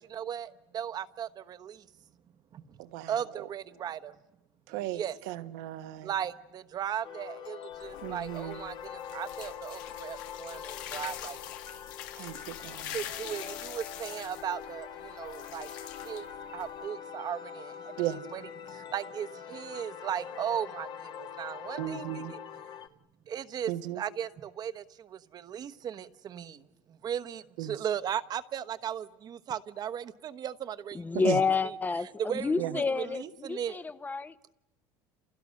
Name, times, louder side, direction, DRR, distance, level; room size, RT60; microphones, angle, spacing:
voice 1, 0.0-1.9 2.5-2.8 3.1-4.1 4.7-5.2 6.0-11.4 12.9-15.7 16.0-16.3 16.5-22.4 23.3-31.2 32.2-33.8, right 9 dB, 40° right, 1.1 m, -37 dB
voice 2, 2.8-3.1 4.7-6.1 8.0-8.6 12.2-13.0 18.0-18.2 21.8-22.3 23.7-24.0 27.6-27.7 31.2-31.4 32.6-32.8, right 13 dB, 80° right, 1.4 m, -35 dB
sound 1, 7.0-22.9, left 8 dB, 45° left, 1.4 m, -44 dB
sound 2, 7.7-16.9, left 11 dB, 85° left, 1.9 m, -44 dB
voice 3, 30.9-34.3, left 4 dB, 15° left, 0.9 m, -29 dB
29.5 x 28.5 x 6.5 m
supercardioid pair, 115°, 10 cm